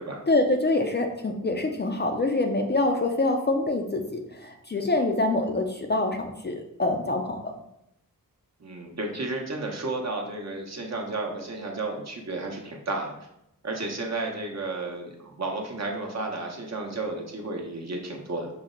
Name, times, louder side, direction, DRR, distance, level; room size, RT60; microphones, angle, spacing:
voice 1, 0.3-7.5, left 2 dB, 30° left, 3 dB, 0.4 m, -25 dB
voice 2, 8.6-13.1 13.6-18.5, right 2 dB, 50° right, 0 dB, 0.9 m, -32 dB
5.7 x 2.1 x 3.7 m, 0.80 s
wide cardioid pair, 75°, 35 cm